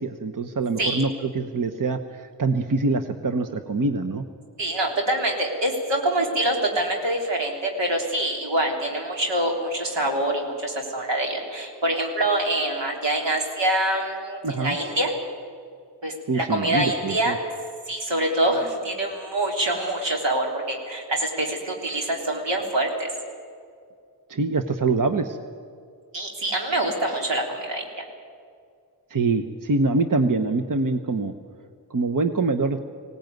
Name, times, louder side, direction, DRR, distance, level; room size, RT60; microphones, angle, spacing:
voice 1, 0.0-4.2 14.4-14.8 16.3-17.4 24.3-25.4 29.1-31.3 31.9-32.8, right 3 dB, 50° right, 8 dB, 1.1 m, -24 dB
voice 2, 4.6-15.1 16.0-17.4 17.9-23.1 26.1-28.0, right 1 dB, 85° right, 1 dB, 3.7 m, -25 dB
20.0 x 17.5 x 9.3 m, 2.2 s
cardioid pair, 55°, 42 cm